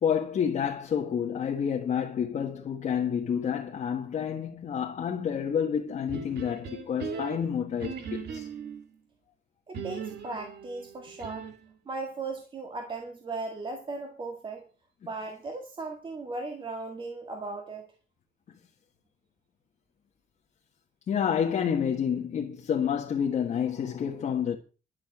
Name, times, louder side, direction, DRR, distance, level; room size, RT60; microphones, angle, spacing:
voice 1, 0.0-8.5 21.1-24.6, left 8 dB, 45° left, 1.6 m, -29 dB
sound 1, 6.1-8.9 9.7-11.7, right 6 dB, 80° right, 2.2 m, -39 dB
voice 2, 9.7-11.5 11.9-14.7 15.0-17.9, right 3 dB, 30° right, 1.9 m, -37 dB
12.0 x 6.9 x 8.1 m
cardioid pair, 170°, 17 cm